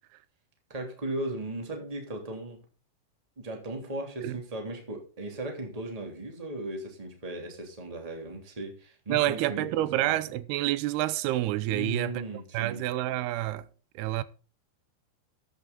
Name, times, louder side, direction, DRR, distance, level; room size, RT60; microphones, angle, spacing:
voice 1, 0.7-2.6 3.4-9.7 10.0-10.2 11.7-12.8, right 1 dB, 10° right, 2.5 m, -37 dB
voice 2, 9.1-12.3 12.5-13.7 14.0-14.2, right 15 dB, 85° right, 2.7 m, -28 dB
13.5 x 8.5 x 4.0 m
omnidirectional pair, 4.6 m